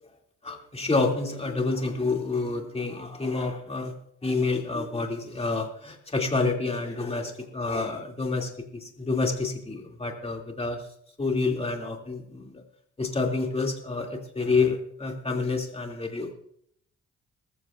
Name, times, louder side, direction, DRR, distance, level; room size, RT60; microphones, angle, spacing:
voice 1, 0.4-3.9 4.2-10.8 11.2-12.6 13.0-16.3, left 3 dB, 20° left, 1 dB, 2.6 m, -28 dB
19.5 x 14.5 x 2.5 m, 0.68 s
cardioid pair, 90°, 30 cm